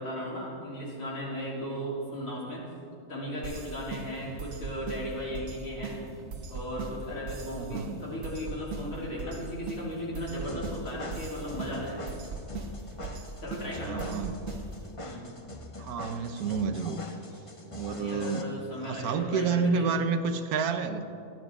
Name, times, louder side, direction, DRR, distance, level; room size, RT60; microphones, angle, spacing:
voice 1, 0.0-2.7 3.1-5.9 6.5-12.1 13.4-14.1 15.0-15.3 17.9-20.1, equal, 65° left, -6 dB, 3.9 m, -36 dB
sound 1, 3.4-14.9, right 3 dB, 65° right, 1.4 m, -40 dB
voice 2, 7.5-8.0 13.8-14.4 15.8-17.0 17.7-18.5 18.8-21.0, right 5 dB, 80° right, 9 dB, 1.3 m, -29 dB
sound 2, 10.4-18.4, left 1 dB, 25° left, 0.8 m, -43 dB
21.5 x 12.0 x 3.7 m, 2.7 s
omnidirectional pair, 1.6 m